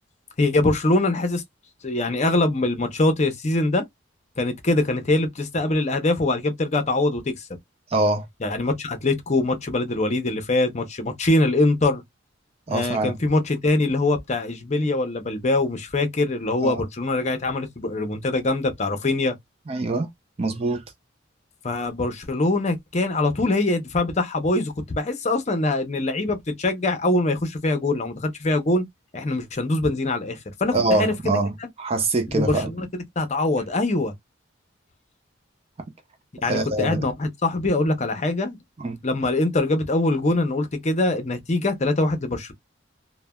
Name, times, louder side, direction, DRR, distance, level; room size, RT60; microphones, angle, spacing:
voice 1, 0.4-1.4 1.8-3.8 4.4-7.5 8.4-12.0 12.7-19.3 21.6-28.8 29.1-31.1 32.3-32.9 33.2-34.1 36.4-38.6 39.0-42.5, left 2 dB, 35° left, 0.6 m, -23 dB
voice 2, 7.9-8.3 12.7-13.2 16.6-16.8 19.7-20.1 20.4-20.8 30.7-32.7 36.5-37.0 38.8-39.0, right 2 dB, 30° right, 0.4 m, -24 dB
3.1 x 2.1 x 2.2 m
head